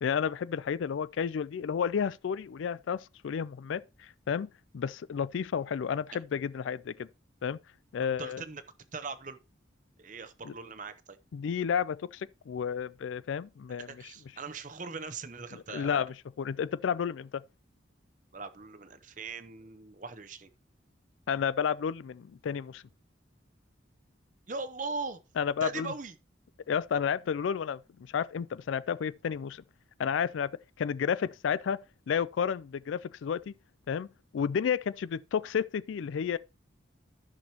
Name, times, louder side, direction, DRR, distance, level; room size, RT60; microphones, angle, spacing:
voice 1, 0.0-4.5 4.7-7.1 7.4-7.6 7.9-8.4 10.4-10.5 11.3-13.9 15.5-17.4 21.3-22.8 25.4-25.9 26.7-29.6 30.0-30.5 30.8-31.8 32.1-33.5 33.9-34.1 34.3-36.4, left 7 dB, 80° left, 0.3 m, -31 dB
voice 2, 8.2-8.6 8.9-9.4 10.0-11.2 13.8-16.0 18.3-20.5 24.5-25.2 25.6-26.1, right 4 dB, 40° right, 0.8 m, -40 dB
13.5 x 6.1 x 2.9 m
head